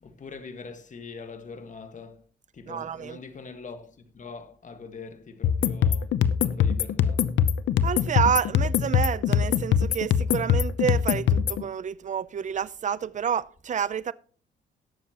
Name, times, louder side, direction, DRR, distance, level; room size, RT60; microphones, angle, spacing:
voice 1, 0.0-2.2 2.5-6.1 6.4-7.3, left 4 dB, 40° left, 1.7 m, -43 dB
voice 2, 2.7-3.2 7.8-14.1, right 8 dB, 40° right, 0.5 m, -29 dB
sound 1, 5.4-11.6, left 8 dB, 70° left, 0.7 m, -23 dB
18.5 x 7.2 x 3.0 m
cardioid pair, 90°, 20 cm